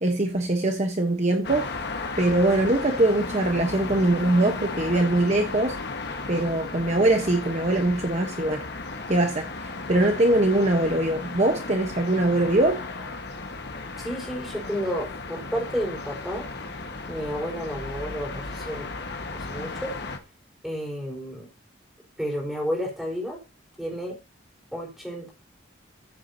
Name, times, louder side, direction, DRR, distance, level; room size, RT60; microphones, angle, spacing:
voice 1, 0.0-1.7 2.2-5.8 6.3-8.6 9.1-12.8, right 1 dB, 35° right, 1.1 m, -22 dB
sound 1, 1.4-20.2, left 3 dB, 55° left, 1.5 m, -35 dB
voice 2, 14.0-16.5 17.1-18.9 19.3-19.9 20.6-21.5 22.2-23.4 23.8-24.2 24.7-25.3, equal, ahead, 4.3 m, -31 dB
14.0 x 7.4 x 2.8 m
head